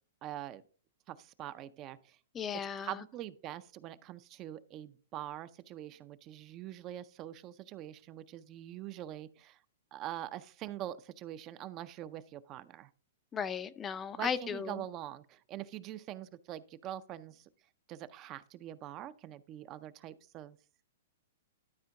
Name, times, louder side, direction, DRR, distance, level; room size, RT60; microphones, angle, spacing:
voice 1, 0.2-0.6 1.1-2.2 2.8-9.6 9.9-12.9 14.2-17.5 17.9-20.6, right 12 dB, 35° right, 14 dB, 0.5 m, -44 dB
voice 2, 2.3-3.0 13.3-14.8, left 7 dB, 20° left, 14 dB, 0.5 m, -36 dB
12.0 x 4.3 x 3.7 m, 0.42 s
hypercardioid pair, 130°, 0 cm